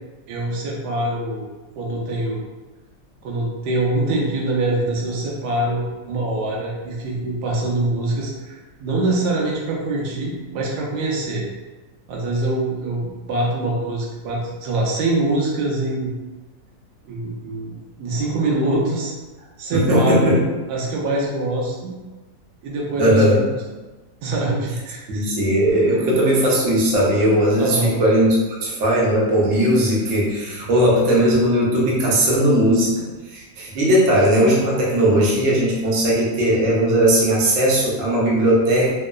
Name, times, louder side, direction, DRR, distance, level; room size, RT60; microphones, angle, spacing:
voice 1, 0.3-1.4 1.8-2.4 3.2-11.4 12.1-16.1 17.0-19.1 19.4-20.4 20.7-21.9 22.6-23.5 24.2-25.2 25.9-26.0 27.6-27.9, right 2 dB, 85° right, -3 dB, 1.1 m, -24 dB
voice 2, 19.7-20.4 23.0-23.4 25.1-38.9, right 1 dB, 65° right, -5 dB, 1.0 m, -18 dB
3.0 x 2.1 x 2.2 m, 1.2 s
omnidirectional pair, 1.7 m